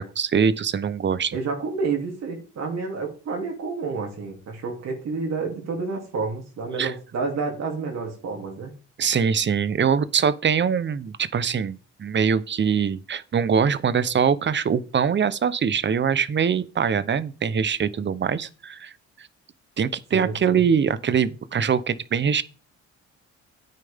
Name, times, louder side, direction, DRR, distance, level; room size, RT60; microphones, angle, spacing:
voice 1, 0.0-1.4 6.8-6.9 9.0-18.9 19.2-19.3 19.8-22.4, right 7 dB, 40° right, 0.8 m, -23 dB
voice 2, 1.3-8.7 20.1-20.7, right 4 dB, 60° right, 3.0 m, -29 dB
9.5 x 9.0 x 3.6 m
cardioid pair, 90°, 30 cm